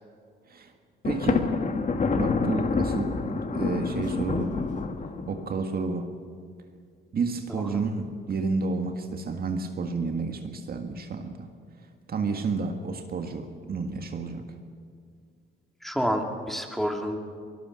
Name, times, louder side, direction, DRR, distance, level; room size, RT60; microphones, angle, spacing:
Thunder, 1.0-5.6, left 4 dB, 40° left, 1.7 m, -27 dB
voice 1, 1.0-1.5 1.9-4.5 5.3-6.1 7.1-11.5 12.1-14.5, right 4 dB, 50° right, 5 dB, 1.8 m, -31 dB
voice 2, 7.5-7.8 15.8-17.2, equal, ahead, 3 dB, 2.9 m, -29 dB
25.0 x 19.5 x 6.4 m, 2.2 s
cardioid pair, 90°, 20 cm